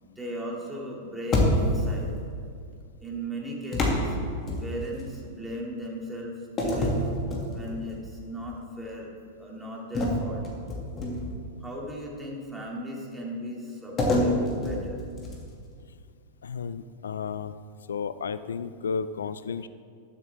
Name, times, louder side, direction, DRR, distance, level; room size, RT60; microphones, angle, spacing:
voice 1, 0.0-2.1 3.0-4.2 4.6-7.1 7.5-9.1 9.4-10.4 11.6-15.0, equal, 10° right, -3 dB, 2.2 m, -37 dB
sound 1, 1.3-2.0 3.7-5.1 6.6-7.9 8.4-8.6 9.9-11.5 14.0-15.6, left 1 dB, 30° left, 2.1 m, -26 dB
voice 2, 16.4-17.6 17.9-19.7, left 6 dB, 85° left, 14 dB, 0.3 m, -32 dB
12.0 x 7.5 x 3.4 m, 2.3 s
hypercardioid pair, 110°, 0 cm